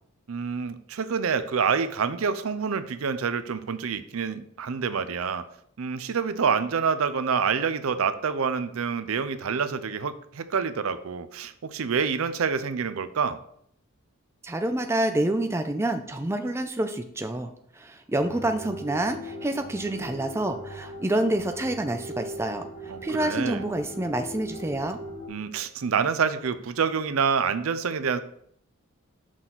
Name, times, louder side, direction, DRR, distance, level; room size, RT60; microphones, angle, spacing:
voice 1, 0.3-5.4 5.8-13.4 22.9-23.6 25.3-28.2, right 6 dB, 70° right, 12 dB, 0.5 m, -27 dB
voice 2, 14.4-25.0, right 1 dB, 10° right, 6 dB, 0.4 m, -28 dB
sound 1, 18.1-25.3, equal, 65° left, 2.5 m, -40 dB
6.2 x 3.9 x 5.8 m, 0.66 s
head